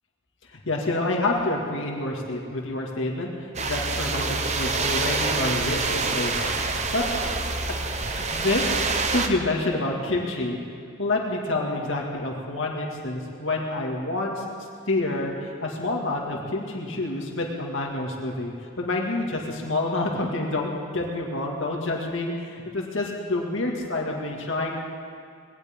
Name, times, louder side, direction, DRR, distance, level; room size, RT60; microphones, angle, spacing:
voice 1, 0.5-6.6 6.9-7.0 7.6-10.6 11.0-14.4 14.9-24.9, left 2 dB, 70° left, -1 dB, 2.1 m, -28 dB
sound 1, 3.5-9.3, right 3 dB, 35° right, 0.9 m, -26 dB
21.0 x 18.0 x 3.7 m, 2.4 s
head